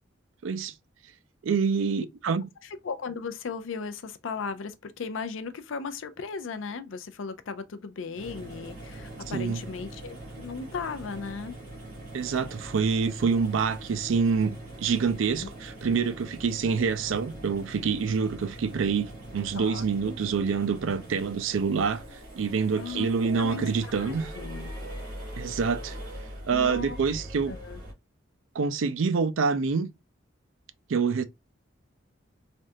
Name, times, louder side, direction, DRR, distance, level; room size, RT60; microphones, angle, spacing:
voice 1, 0.4-0.7 1.4-2.5 9.3-9.6 12.1-22.0 22.3-24.3 25.4-26.0 26.5-27.5 28.5-29.9 30.9-31.2, right 5 dB, 75° right, 0.4 m, -26 dB
voice 2, 2.8-11.6 15.4-15.5 19.5-20.2 22.8-23.1 23.4-24.9 26.5-27.0 27.5-27.8, left 5 dB, 75° left, 0.5 m, -37 dB
sound 1, 8.1-27.9, right 1 dB, 40° right, 1.6 m, -42 dB
3.4 x 2.4 x 2.6 m
head